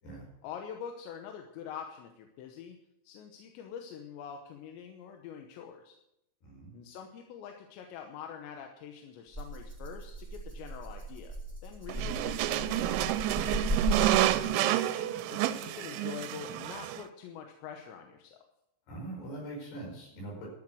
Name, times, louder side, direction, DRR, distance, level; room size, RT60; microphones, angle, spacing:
voice 1, 0.4-2.8 3.0-6.0 6.7-11.4 11.6-13.7 14.4-18.4, left 7 dB, 80° left, 4 dB, 3.1 m, -45 dB
voice 2, 6.4-6.7 12.0-12.1 18.9-20.5, right 2 dB, 60° left, -1 dB, 6.9 m, -43 dB
Rattle (instrument), 9.3-14.7, right 1 dB, 5° left, 2.6 m, -36 dB
sound 1, 11.9-17.0, right 14 dB, 90° right, 3.1 m, -29 dB
12.5 x 8.9 x 7.7 m, 0.85 s
omnidirectional pair, 5.3 m